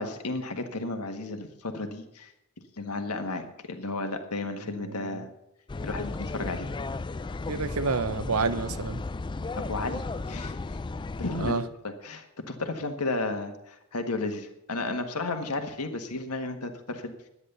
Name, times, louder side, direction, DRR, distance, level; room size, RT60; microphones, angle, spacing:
voice 1, 0.0-2.3 2.8-5.3 5.8-6.7 9.6-10.8 11.2-17.3, left 2 dB, 85° left, 6 dB, 1.6 m, -33 dB
voice 2, 4.8-5.2 7.5-9.0 11.4-11.6, right 4 dB, 70° right, 12 dB, 0.9 m, -29 dB
sound 1, 5.7-11.5, left 3 dB, 20° left, 0.4 m, -34 dB
11.0 x 9.8 x 6.9 m, 0.85 s
head